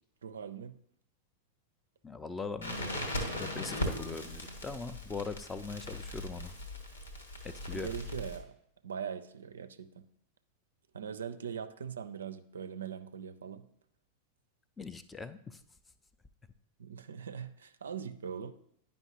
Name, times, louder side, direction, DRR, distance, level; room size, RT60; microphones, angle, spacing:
voice 1, 0.2-0.8 7.7-8.5 8.8-10.0 10.9-13.7 16.8-18.5, right 7 dB, 70° right, 12 dB, 0.4 m, -41 dB
voice 2, 2.0-3.0 3.3-6.6 7.4-7.9 14.8-15.6, left 4 dB, 15° left, 12 dB, 0.4 m, -41 dB
Crackle, 2.6-8.4, left 1 dB, 75° left, 1.0 m, -39 dB
sound 1, 2.6-4.7, left 2 dB, 50° left, 0.9 m, -45 dB
9.7 x 5.2 x 2.9 m, 0.71 s
figure-of-eight pair, 90°, 0 cm